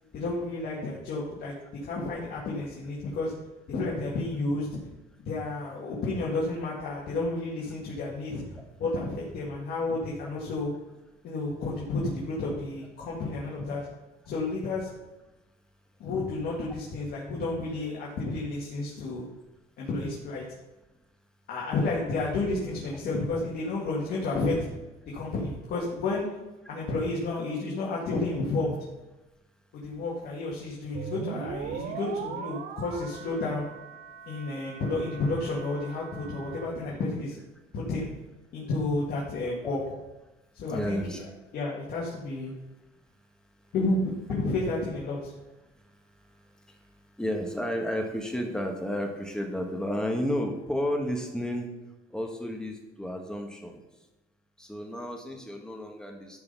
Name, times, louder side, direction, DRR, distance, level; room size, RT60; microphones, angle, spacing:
voice 1, 0.1-1.6 1.8-3.3 3.7-4.7 5.3-8.4 8.8-10.7 11.2-13.9 14.3-14.9 16.0-19.3 19.8-20.4 21.5-24.7 25.1-26.3 26.7-28.8 29.7-33.7 34.3-37.4 37.7-38.1 38.5-39.8 40.5-41.0 41.5-42.5 43.7-45.3, left 2 dB, 65° left, -5 dB, 2.1 m, -31 dB
sound 1, 30.9-36.7, right 8 dB, 75° right, 0.8 m, -40 dB
voice 2, 39.6-40.0 40.7-41.3 42.7-43.3 43.6-43.7 45.6-51.7 52.1-54.1 54.6-56.4, equal, 5° left, 2 dB, 1.6 m, -33 dB
11.5 x 4.3 x 5.5 m, 1.1 s
cardioid pair, 110°, 17 cm